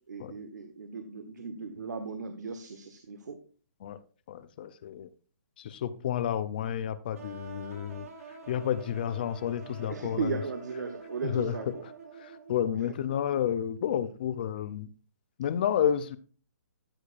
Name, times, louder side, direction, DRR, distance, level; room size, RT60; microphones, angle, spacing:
voice 1, 0.1-3.4 9.9-11.7, right 5 dB, 85° right, 1.1 m, -36 dB
voice 2, 4.3-5.1 5.6-8.1 8.5-10.4 11.2-11.9 12.2-14.9 15.4-16.2, left 9 dB, 30° left, 0.5 m, -31 dB
sound 1, 7.1-13.0, right 5 dB, 55° right, 1.8 m, -47 dB
13.0 x 6.5 x 2.5 m
hypercardioid pair, 170°, 9 cm